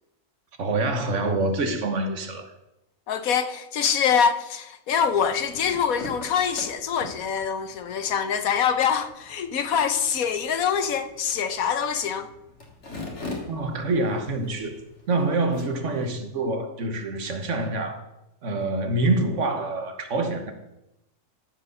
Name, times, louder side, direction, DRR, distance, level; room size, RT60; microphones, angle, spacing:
voice 1, 0.6-2.5 13.5-14.8 15.1-18.0 18.4-20.5, right 2 dB, 55° right, 1.5 m, -26 dB
voice 2, 3.1-12.3, left 7 dB, 70° left, 1.3 m, -24 dB
sound 1, 4.9-16.1, left 2 dB, 50° left, 2.5 m, -42 dB
13.5 x 4.9 x 6.5 m
omnidirectional pair, 1.6 m